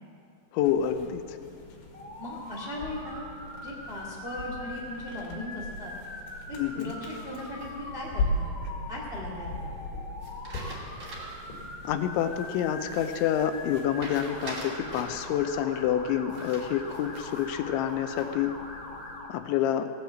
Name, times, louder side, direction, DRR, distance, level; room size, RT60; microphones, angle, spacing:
voice 1, 0.5-1.2 6.6-6.9 11.8-18.5 19.3-19.9, left 10 dB, 85° left, 9 dB, 3.0 m, -28 dB
sound 1, 0.6-19.2, left 2 dB, 65° left, 3.5 m, -40 dB
Motor vehicle (road) / Siren, 1.9-19.3, left 1 dB, 20° left, 1.8 m, -42 dB
voice 2, 2.2-3.3 3.6-5.9 6.5-8.5 8.9-9.5, left 1 dB, 85° right, -3 dB, 0.5 m, -38 dB
sound 2, 7.1-8.0 10.2-11.5 11.9-12.0 14.0-15.3 16.3-17.5 17.9-18.5, right 2 dB, 35° right, 2.5 m, -43 dB
18.0 x 9.2 x 7.5 m, 2.4 s
omnidirectional pair, 5.4 m